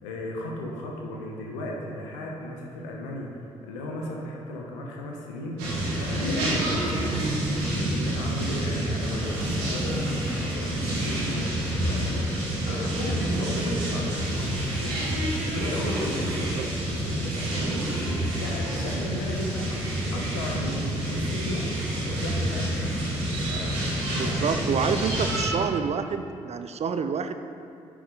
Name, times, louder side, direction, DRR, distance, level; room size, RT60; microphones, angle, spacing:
voice 1, 0.0-3.3 3.6-12.3 12.6-15.1 15.4-21.6 22.1-25.4, left 1 dB, 80° left, -1 dB, 1.0 m, -36 dB
sound 1, 5.6-25.5, right 1 dB, 75° right, 1.7 m, -28 dB
sound 2, 7.1-10.6, right 4 dB, 60° right, 1.0 m, -37 dB
voice 2, 16.4-16.7 24.2-27.3, right 6 dB, 45° right, 8 dB, 0.5 m, -28 dB
9.8 x 5.0 x 3.9 m, 2.5 s
hypercardioid pair, 40°, 16 cm